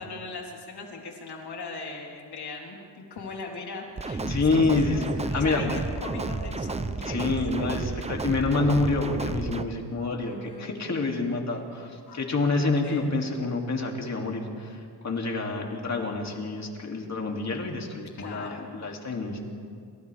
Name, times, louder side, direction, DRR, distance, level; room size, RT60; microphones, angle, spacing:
voice 1, 0.0-2.8 3.1-7.4 10.2-10.8 12.1-12.2 12.8-13.1 18.2-18.7, left 3 dB, 65° left, -1 dB, 4.0 m, -39 dB
sound 1, 4.0-9.6, right 3 dB, 15° right, 0.7 m, -32 dB
voice 2, 4.2-5.1 5.3-5.6 7.1-19.4, left 3 dB, 40° left, 1 dB, 2.8 m, -27 dB
30.0 x 27.5 x 3.5 m, 2.2 s
wide cardioid pair, 140°, 42 cm